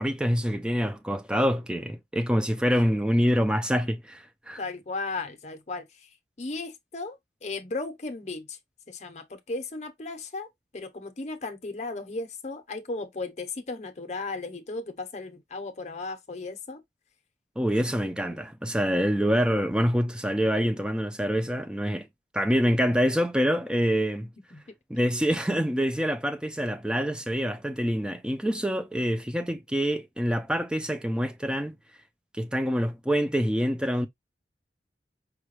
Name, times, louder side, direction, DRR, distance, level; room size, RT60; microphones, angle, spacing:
voice 1, 0.0-4.6 17.6-22.1 22.3-24.3 24.9-31.8 32.3-34.1, equal, 5° right, 0.4 m, -26 dB
voice 2, 4.6-6.1 6.4-8.6 8.9-16.8 18.0-18.4 24.5-24.6, left 3 dB, 40° left, 0.7 m, -36 dB
4.9 x 2.2 x 3.1 m
head